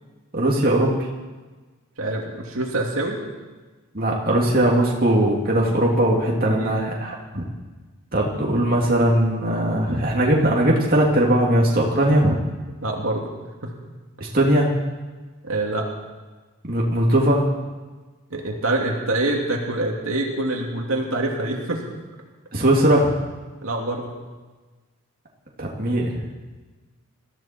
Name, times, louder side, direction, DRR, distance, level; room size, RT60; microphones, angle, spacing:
voice 1, 0.3-1.0 3.9-7.4 8.1-12.4 14.2-14.7 16.6-17.5 22.5-23.1 25.6-26.1, right 1 dB, 40° right, -3 dB, 2.5 m, -19 dB
voice 2, 2.0-3.2 6.5-6.7 12.8-13.3 13.6-13.7 15.4-15.8 18.3-21.8 23.6-24.1, right 2 dB, 70° right, 0 dB, 2.7 m, -25 dB
21.5 x 14.5 x 4.5 m, 1.3 s
head